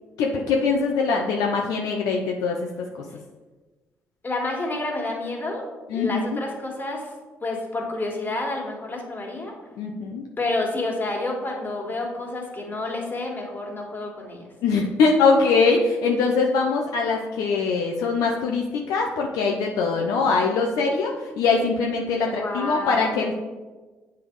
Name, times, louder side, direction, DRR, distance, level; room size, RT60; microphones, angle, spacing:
voice 1, 0.2-2.6 5.9-6.4 9.8-10.2 14.6-23.4, left 4 dB, 75° left, 1 dB, 0.6 m, -22 dB
voice 2, 4.2-5.6 5.9-7.1 7.4-9.5 10.4-14.4 22.3-23.3, left 2 dB, 30° left, 0 dB, 2.0 m, -29 dB
7.9 x 3.5 x 4.7 m, 1.2 s
hypercardioid pair, 55°, 6 cm